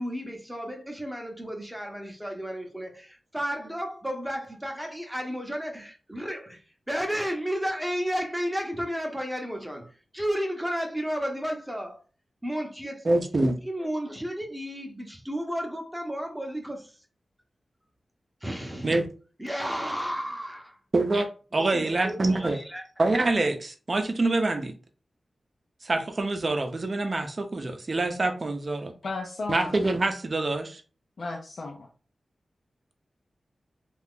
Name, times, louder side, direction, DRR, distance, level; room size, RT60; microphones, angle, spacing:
voice 1, 0.0-6.6 6.9-9.9 10.1-12.0 12.4-13.1 13.7-17.0 18.4-19.1 19.4-20.8 21.6-22.9, equal, 10° right, 0.7 m, -32 dB
voice 2, 13.0-13.6 18.8-19.0 20.9-22.6 23.0-24.7 25.8-28.9 29.5-30.8, right 2 dB, 45° right, 0.6 m, -25 dB
voice 3, 29.0-29.8 31.2-31.9, left 3 dB, 70° left, 0.5 m, -34 dB
2.8 x 2.4 x 3.6 m
wide cardioid pair, 85°, 0 cm